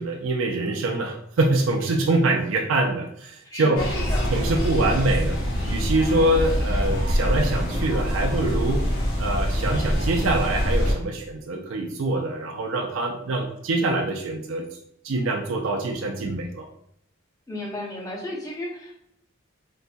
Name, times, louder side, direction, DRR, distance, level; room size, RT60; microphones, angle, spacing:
voice 1, 0.0-3.8 4.3-5.4 5.7-8.8 9.2-14.6 15.0-16.7, right 2 dB, 75° right, 2 dB, 0.4 m, -24 dB
voice 2, 3.4-4.3 17.5-19.0, left 1 dB, 15° left, -2 dB, 0.7 m, -33 dB
sound 1, 3.8-10.9, equal, 75° left, 1.3 m, -24 dB
4.0 x 2.6 x 2.2 m, 0.75 s
head